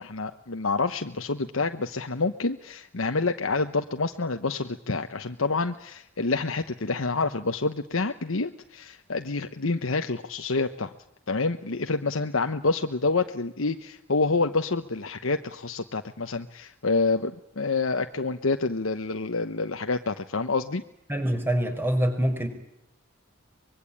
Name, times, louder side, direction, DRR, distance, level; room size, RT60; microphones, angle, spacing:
voice 1, 0.0-10.9 11.3-20.8, left 3 dB, 70° left, 7 dB, 1.1 m, -28 dB
voice 2, 21.1-22.5, right 1 dB, 10° right, 6 dB, 5.0 m, -25 dB
24.5 x 22.5 x 8.7 m, 0.80 s
head